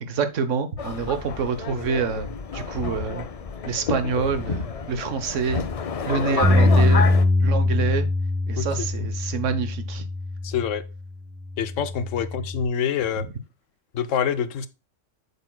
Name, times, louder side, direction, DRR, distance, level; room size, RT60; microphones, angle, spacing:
voice 1, 0.0-3.3 3.7-5.6 6.0-7.1 7.4-8.1 8.5-10.0, right 5 dB, 75° right, 1.2 m, -27 dB
Subway metro underground, 0.8-7.3, left 5 dB, 50° left, 0.4 m, -29 dB
Bass guitar, 6.4-10.9 11.5-12.7, left 2 dB, 10° right, 1.1 m, -22 dB
voice 2, 8.6-8.9 10.4-10.8 11.6-13.3 13.9-14.7, left 8 dB, 85° left, 1.0 m, -26 dB
8.1 x 7.0 x 2.2 m
omnidirectional pair, 1.3 m